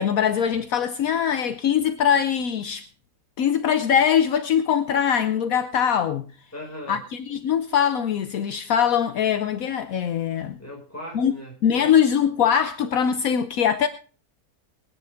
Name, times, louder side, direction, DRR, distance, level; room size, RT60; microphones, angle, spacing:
voice 1, 0.0-2.9 3.4-6.2 6.9-10.6 11.1-11.3 11.6-13.9, left 8 dB, 70° left, 1.2 m, -22 dB
voice 2, 6.5-7.0 10.6-11.9, equal, 10° left, 5.3 m, -39 dB
22.5 x 9.6 x 3.5 m
omnidirectional pair, 1.6 m